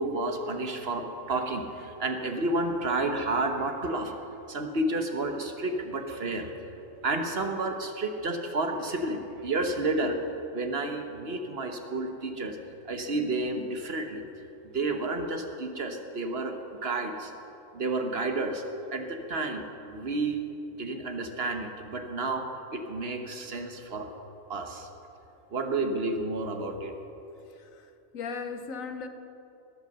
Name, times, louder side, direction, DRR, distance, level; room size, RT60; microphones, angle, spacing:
voice 1, 0.0-4.1 4.5-6.5 7.0-10.2 10.5-12.6 12.8-14.2 14.6-16.6 16.8-17.3 17.7-18.6 18.9-20.4 20.8-22.5 22.7-24.1 24.5-24.9 25.5-26.9, right 2 dB, 50° right, 5 dB, 1.2 m, -31 dB
voice 2, 28.1-29.1, left 5 dB, 80° left, 8 dB, 1.3 m, -36 dB
19.5 x 8.0 x 6.7 m, 2.9 s
omnidirectional pair, 1.4 m